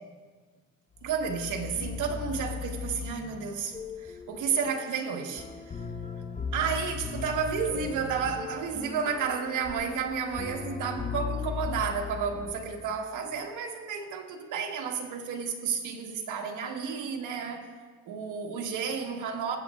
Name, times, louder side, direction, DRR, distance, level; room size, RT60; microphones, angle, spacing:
sound 1, 1.0-13.0, left 6 dB, 25° left, 1.0 m, -38 dB
voice 1, 1.0-5.8 6.5-17.6 18.1-19.6, right 6 dB, 85° right, 2 dB, 1.2 m, -32 dB
20.0 x 8.2 x 2.3 m, 1.4 s
cardioid pair, 90°, 30 cm